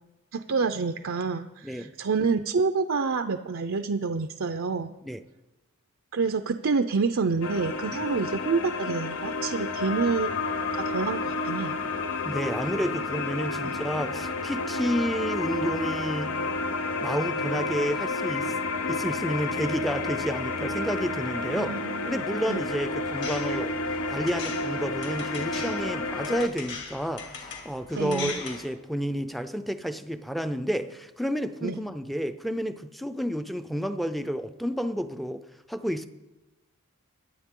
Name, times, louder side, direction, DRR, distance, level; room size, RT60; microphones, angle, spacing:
voice 1, 0.3-4.9 6.1-10.3 10.8-11.8 13.6-13.8 21.5-22.2 22.5-22.6 27.9-28.4 31.6-31.8, right 4 dB, 60° right, 7 dB, 0.6 m, -28 dB
voice 2, 1.6-1.9 5.0-5.2 7.9-8.0 12.2-16.3 17.0-18.5 18.9-21.8 22.1-23.7 24.1-35.4 35.7-36.1, equal, ahead, 9 dB, 0.5 m, -30 dB
sound 1, 7.4-26.5, left 3 dB, 75° left, 0.7 m, -30 dB
sound 2, 22.5-28.7, left 4 dB, 55° left, 2.8 m, -40 dB
23.5 x 8.7 x 3.8 m, 1.0 s
head